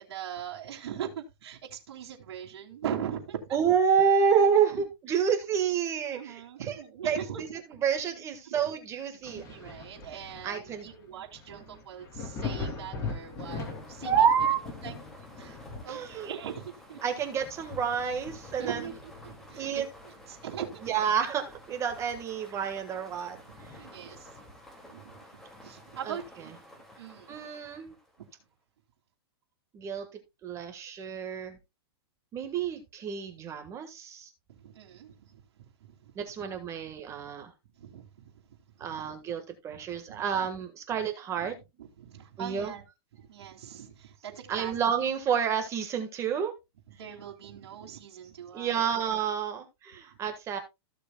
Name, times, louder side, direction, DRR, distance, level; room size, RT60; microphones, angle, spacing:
voice 1, 0.0-3.6 4.7-5.2 6.1-7.4 7.7-7.8 8.4-8.6 9.3-14.3 14.8-15.0 15.3-17.0 18.6-21.0 22.5-22.6 23.4-24.3 24.9-27.4 34.5-36.1 36.8-36.9 37.7-39.1 39.7-40.5 41.8-42.8 43.2-44.8 46.9-49.1 50.1-50.2, right 9 dB, 75° right, 2.8 m, -41 dB
voice 2, 3.5-7.5 7.8-9.4 10.4-10.9 14.0-14.6 15.9-16.3 17.0-18.9 19.6-19.8 20.8-23.4 23.7-23.8 26.1-26.2 27.3-27.9 29.7-30.1 30.4-31.6 32.3-34.3 36.1-37.5 38.8-41.6 42.4-42.7 44.5-46.5 48.5-50.6, right 7 dB, 20° right, 1.4 m, -29 dB
Thunder, 9.2-20.6 21.0-22.5 22.8-22.9 23.5-24.8 26.2-26.3, left 4 dB, 20° left, 2.9 m, -42 dB
sound 1, 13.0-28.4, left 1 dB, 5° left, 2.2 m, -52 dB
15.5 x 6.9 x 2.2 m
supercardioid pair, 155°, 14 cm